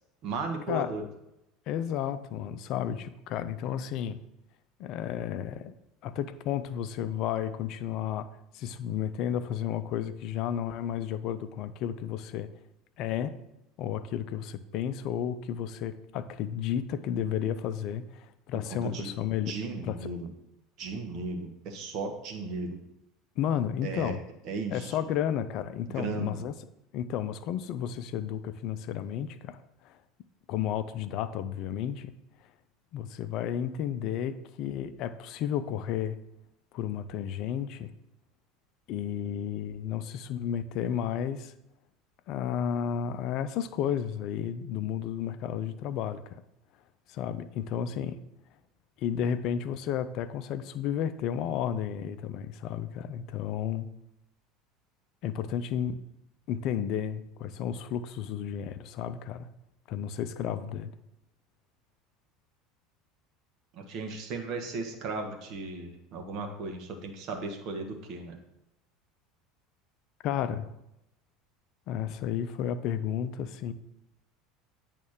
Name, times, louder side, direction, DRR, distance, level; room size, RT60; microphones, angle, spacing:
voice 1, 0.2-1.0 18.7-19.1 19.5-20.3 20.8-22.8 23.8-24.1 24.4-25.0 25.9-26.4 63.7-68.4, right 3 dB, 50° right, 4 dB, 1.3 m, -36 dB
voice 2, 1.7-4.2 4.8-5.7 6.0-8.3 8.5-12.5 13.0-13.3 13.8-19.5 19.8-20.1 23.4-24.2 24.7-26.5 26.9-29.6 29.8-30.0 30.5-32.1 32.9-36.2 36.7-37.9 38.9-41.5 42.3-46.4 47.1-48.2 49.0-53.9 55.2-56.0 56.5-59.5 59.9-60.9 70.2-70.7 71.9-73.7, left 9 dB, 55° left, 12 dB, 0.5 m, -32 dB
8.3 x 3.3 x 6.5 m, 0.87 s
figure-of-eight pair, 70°, 0 cm